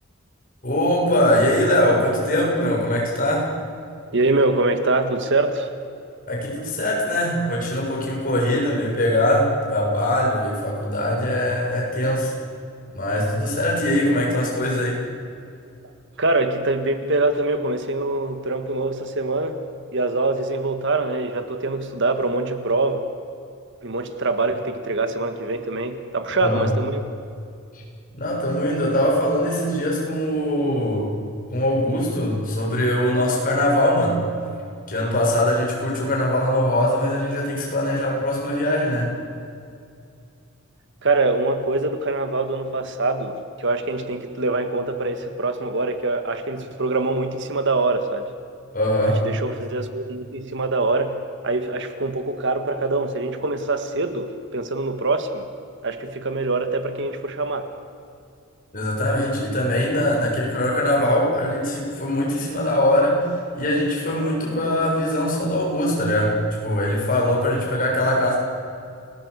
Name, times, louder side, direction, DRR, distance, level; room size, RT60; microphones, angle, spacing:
voice 1, 0.6-3.5 6.3-12.3 12.9-15.0 26.4-26.7 28.1-31.1 31.5-34.2 34.9-39.1 48.7-49.2 58.7-68.4, left 1 dB, 45° left, -2 dB, 6.8 m, -22 dB
voice 2, 4.1-5.7 16.2-19.6 19.9-23.1 23.8-27.0 41.0-48.3 49.2-51.2 51.4-55.5 55.8-57.7, right 2 dB, 60° right, 8 dB, 1.8 m, -24 dB
30.0 x 19.5 x 8.2 m, 2.4 s
head